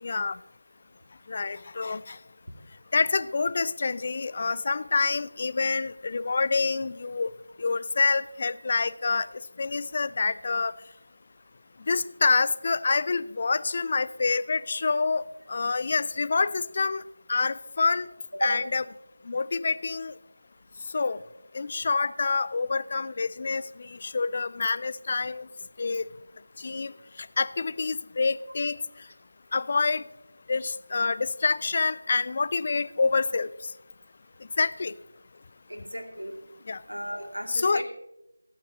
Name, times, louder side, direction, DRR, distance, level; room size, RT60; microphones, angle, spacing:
voice 1, 0.0-0.4 1.3-2.2 2.9-7.3 7.6-9.3 9.6-10.7 11.9-17.0 17.3-18.1 18.4-18.8 19.3-20.1 20.9-21.2 21.5-25.5 25.8-26.1 26.6-26.9 27.4-28.8 29.5-30.0 30.5-33.5 34.6-34.9 36.7-36.8 37.5-37.8, left 4 dB, 30° left, 17 dB, 0.3 m, -27 dB
voice 2, 35.7-36.3 36.9-37.8, equal, 85° right, 2 dB, 2.4 m, -33 dB
23.5 x 9.2 x 2.9 m, 0.89 s
figure-of-eight pair, 165°, 0 cm